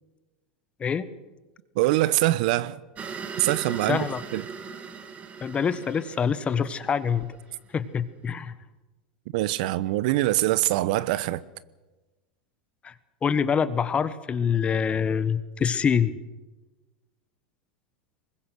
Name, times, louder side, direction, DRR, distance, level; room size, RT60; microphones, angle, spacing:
voice 1, 1.8-2.8 3.4-4.0 4.3-4.4 9.3-11.4, right 17 dB, 65° right, 0.9 m, -23 dB
sound 1, 2.9-7.5, right 5 dB, 30° right, 2.3 m, -39 dB
voice 2, 3.9-4.2 5.4-7.4 7.7-8.5 12.8-12.9 13.2-16.2, left 7 dB, 25° left, 1.4 m, -25 dB
24.0 x 21.0 x 6.4 m
hypercardioid pair, 105°, 5 cm